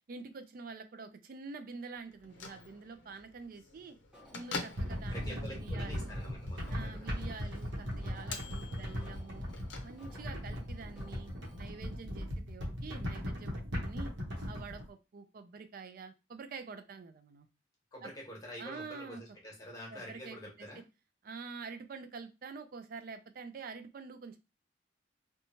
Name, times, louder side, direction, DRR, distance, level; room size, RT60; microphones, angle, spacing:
voice 1, 0.1-4.0 4.3-6.2 6.7-9.5 9.8-11.3 11.6-14.1 14.5-17.5 18.0-18.1 18.6-19.2 19.9-20.7 21.2-24.4, right 4 dB, 50° right, 9 dB, 0.4 m, -47 dB
Bell / Microwave oven, 2.1-10.4, left 3 dB, 85° left, 0.5 m, -47 dB
Alarm, 4.1-11.9, left 1 dB, 5° right, 0.8 m, -60 dB
sound 1, 4.7-14.8, equal, 80° right, 0.9 m, -38 dB
voice 2, 5.1-7.1 17.9-20.8, equal, 20° left, -2 dB, 1.1 m, -47 dB
2.9 x 2.2 x 2.7 m, 0.27 s
head